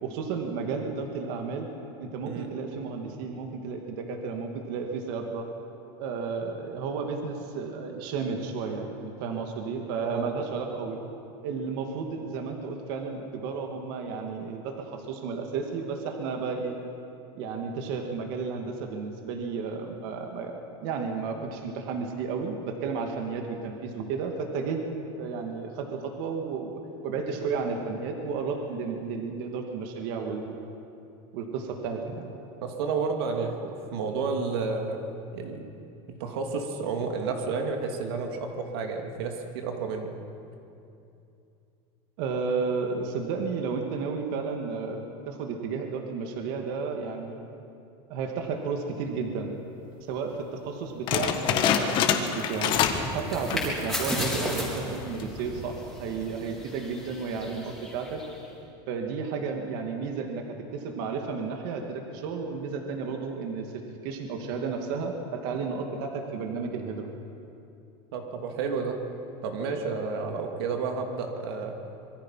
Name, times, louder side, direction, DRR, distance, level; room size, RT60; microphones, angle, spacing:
voice 1, 0.0-1.7 2.0-5.5 6.0-11.0 11.4-16.8 17.3-24.8 25.2-30.6 31.3-32.3 42.2-47.5 48.1-49.5 50.1-52.7 53.1-58.2 58.9-67.1, right 5 dB, 60° right, 3 dB, 2.4 m, -32 dB
voice 2, 32.6-35.7 36.1-40.1 68.1-69.0 69.4-71.8, right 4 dB, 90° right, 3 dB, 2.7 m, -31 dB
sound 1, 51.1-53.1 53.4-53.8 54.2-54.3 55.0-55.4, left 8 dB, 40° left, 1.7 m, -25 dB
sound 2, 52.7-58.5, left 1 dB, ahead, 4.5 m, -35 dB
26.0 x 23.0 x 5.8 m, 2.7 s
cardioid pair, 165°, 13 cm